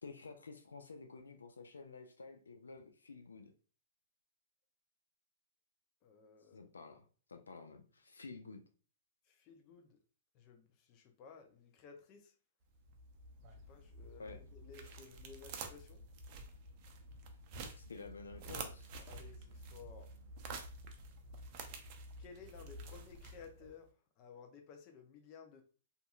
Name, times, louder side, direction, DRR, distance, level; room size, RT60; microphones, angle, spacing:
voice 1, 0.0-3.5 6.5-8.6 14.2-14.4 17.8-18.9, left 4 dB, 85° left, 0.4 m, -51 dB
voice 2, 6.0-6.7 9.3-10.0 10.3-12.3 13.7-16.0 19.1-20.1 22.2-25.6, left 5 dB, 35° left, 0.6 m, -56 dB
sound 1, 12.7-23.8, right 3 dB, 40° right, 0.5 m, -50 dB
2.6 x 2.5 x 2.4 m
hypercardioid pair, 120°, 0 cm